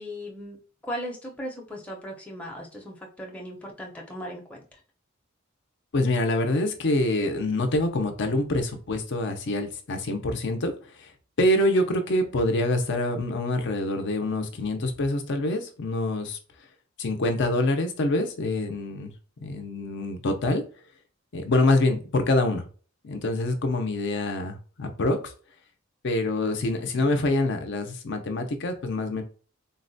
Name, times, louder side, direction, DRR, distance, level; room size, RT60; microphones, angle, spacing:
voice 1, 0.0-4.6 26.8-27.2, equal, 5° left, -2 dB, 0.6 m, -38 dB
voice 2, 5.9-10.7 11.0-11.1 11.4-16.4 17.0-19.1 19.4-20.6 21.3-22.7 23.0-25.3 26.0-29.2, left 2 dB, 60° left, 6 dB, 0.5 m, -25 dB
3.8 x 2.1 x 2.6 m, 0.39 s
head